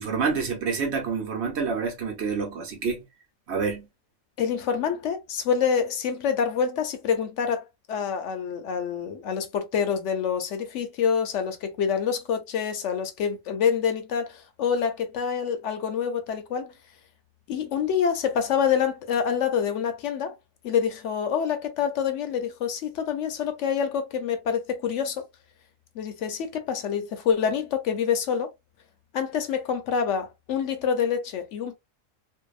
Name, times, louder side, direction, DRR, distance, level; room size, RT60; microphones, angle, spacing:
voice 1, 0.0-3.0 3.5-3.9, right 5 dB, 60° right, 1.0 m, -28 dB
voice 2, 4.4-16.7 17.5-20.3 20.6-25.2 26.0-28.5 29.1-31.7, left 7 dB, 70° left, 0.9 m, -26 dB
2.7 x 2.0 x 2.3 m
omnidirectional pair, 1.3 m